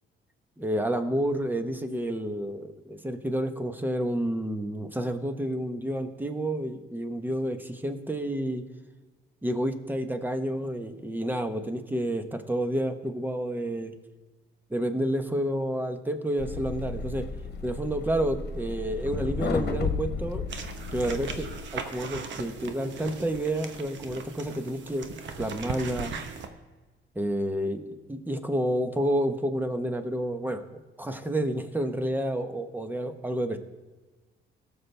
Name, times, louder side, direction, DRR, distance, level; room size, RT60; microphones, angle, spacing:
voice 1, 0.6-8.6 9.4-13.9 14.7-17.3 17.6-20.4 20.9-21.5 21.7-25.1 25.4-26.1 27.1-33.6, right 1 dB, 10° right, 8 dB, 1.1 m, -30 dB
sound 1, 16.4-21.6, left 4 dB, 55° left, 1.3 m, -33 dB
sound 2, 20.5-26.5, right 5 dB, 70° right, 1.1 m, -39 dB
17.5 x 7.1 x 3.4 m, 1.3 s
cardioid pair, 90°, 20 cm